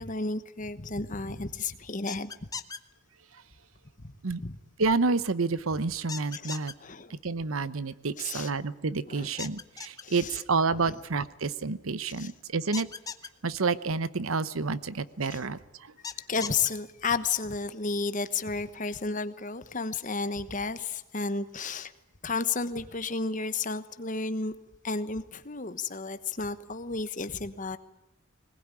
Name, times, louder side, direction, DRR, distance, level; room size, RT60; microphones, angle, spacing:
voice 1, 0.0-2.3 4.0-4.6 6.3-6.5 6.8-7.1 8.2-8.5 9.0-9.3 10.0-10.4 10.7-10.9 12.2-12.3 15.3-15.4 16.2-21.9 22.2-24.5 24.8-27.8, left 4 dB, 40° left, 12 dB, 1.2 m, -32 dB
sound 1, 2.1-2.8 6.1-6.7 9.4-10.0 12.7-13.3 16.0-16.7, left 5 dB, 15° left, 0.8 m, -37 dB
voice 2, 4.8-6.7 7.1-12.9 13.4-15.9, right 4 dB, 80° right, 16 dB, 0.9 m, -29 dB
20.5 x 19.5 x 9.9 m, 0.89 s
head